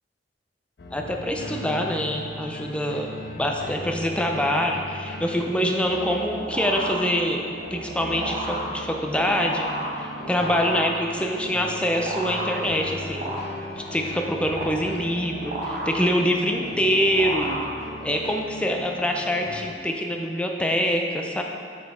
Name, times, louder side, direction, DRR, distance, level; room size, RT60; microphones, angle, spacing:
sound 1, 0.8-19.8, left 1 dB, 60° left, 0.6 m, -38 dB
voice 1, 0.9-3.1 3.4-7.4 7.7-9.7 9.9-13.5 13.8-17.6 18.0-21.4, equal, 5° left, 1 dB, 0.5 m, -25 dB
sound 2, 5.9-18.3, right 1 dB, 50° right, 1.0 m, -33 dB
6.2 x 5.3 x 3.4 m, 2.4 s
head